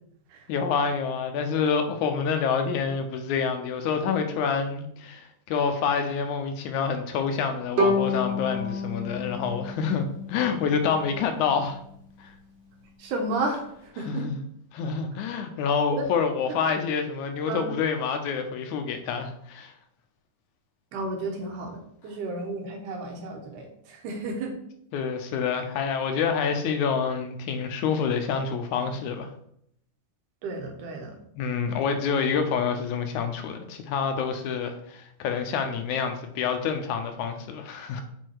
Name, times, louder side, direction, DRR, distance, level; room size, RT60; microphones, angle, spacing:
voice 1, 0.5-11.8 12.2-12.3 14.1-14.4 14.7-19.7 24.9-29.3 31.4-38.0, left 6 dB, 75° left, 6 dB, 2.0 m, -27 dB
Bowed string instrument, 7.8-10.8, left 2 dB, 40° right, 2.4 m, -28 dB
voice 2, 13.0-14.3 15.9-16.1 17.5-17.7 20.9-21.8 22.0-24.5 30.4-31.2, right 2 dB, 75° right, 3 dB, 2.6 m, -32 dB
6.3 x 5.6 x 4.6 m, 0.71 s
omnidirectional pair, 3.7 m